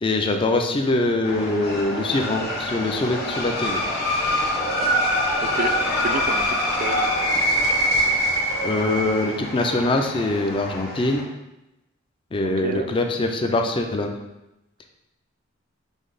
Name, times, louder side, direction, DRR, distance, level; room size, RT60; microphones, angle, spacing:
voice 1, 0.0-3.8 8.6-11.2 12.3-14.2, left 2 dB, 25° left, 4 dB, 0.4 m, -23 dB
sound 1, 1.2-11.2, equal, 50° left, 0.8 m, -24 dB
voice 2, 5.4-5.7 6.0-7.0 12.4-12.9, right 4 dB, 45° right, 6 dB, 0.3 m, -30 dB
5.2 x 2.0 x 3.8 m, 0.93 s
head